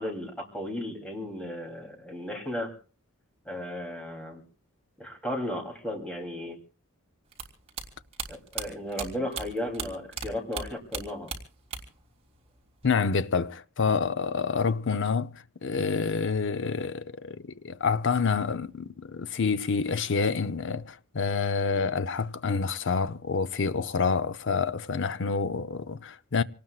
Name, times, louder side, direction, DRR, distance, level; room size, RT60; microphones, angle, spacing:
voice 1, 0.0-2.7 3.4-4.4 5.0-6.6 8.3-11.3, left 1 dB, 5° left, 3.1 m, -35 dB
sound 1, 7.3-10.3 10.5-12.0 12.3-13.1, right 5 dB, 30° right, 3.2 m, -36 dB
voice 2, 12.8-15.3 15.6-26.4, left 5 dB, 60° left, 0.7 m, -28 dB
27.0 x 19.0 x 2.4 m
head